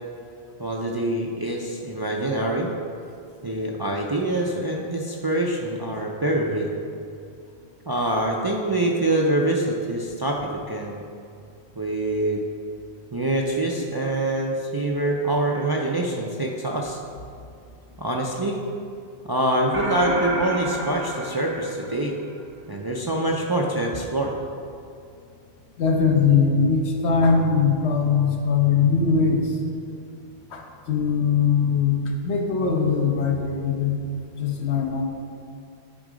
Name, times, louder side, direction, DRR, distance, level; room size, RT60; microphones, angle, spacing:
voice 1, 0.6-2.7 3.4-6.8 7.9-11.0 11.8-12.4 13.1-17.0 18.0-18.6 19.2-22.2 22.7-24.3, right 1 dB, 35° right, -1 dB, 0.4 m, -25 dB
sound 1, 19.7-22.4, right 2 dB, 55° right, 1.0 m, -30 dB
voice 2, 25.8-29.5 30.5-34.0 34.3-35.0, left 5 dB, 80° left, 2 dB, 1.2 m, -21 dB
9.8 x 3.7 x 5.0 m, 2.5 s
omnidirectional pair, 1.1 m